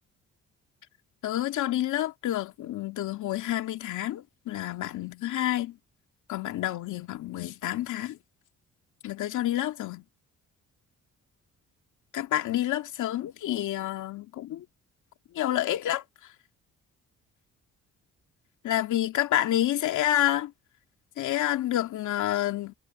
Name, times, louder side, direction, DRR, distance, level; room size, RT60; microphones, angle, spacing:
voice 1, 1.2-5.7 6.3-8.2 9.0-10.0 12.1-14.6 15.4-16.0 18.6-20.5 21.2-22.7, left 13 dB, 80° left, 2.5 m, -28 dB
cardioid pair, 90°, 30 cm